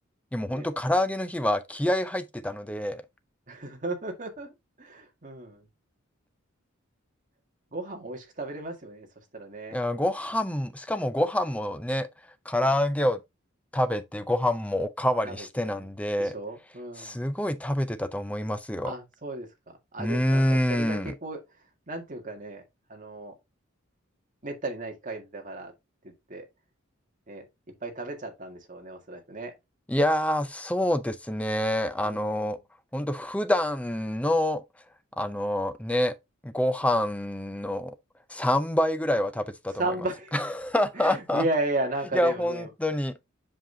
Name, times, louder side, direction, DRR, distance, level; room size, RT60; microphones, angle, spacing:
voice 1, 0.3-3.0 9.7-12.1 12.5-13.2 13.7-16.4 17.0-18.9 20.0-21.1 29.9-32.6 32.9-34.6 35.2-36.1 36.4-37.9 38.3-39.7 40.3-41.5 42.1-43.1, left 1 dB, 5° left, 0.6 m, -27 dB
voice 2, 3.5-4.5 4.8-5.6 7.7-9.1 9.3-9.8 12.6-12.8 15.2-15.5 15.7-15.9 16.2-17.2 18.8-21.4 21.9-22.6 22.9-23.3 24.4-25.7 26.3-26.4 27.3-27.5 27.8-29.5 32.0-32.5 39.8-40.3 40.9-42.7, right 2 dB, 40° right, 1.8 m, -34 dB
7.6 x 5.3 x 2.7 m
head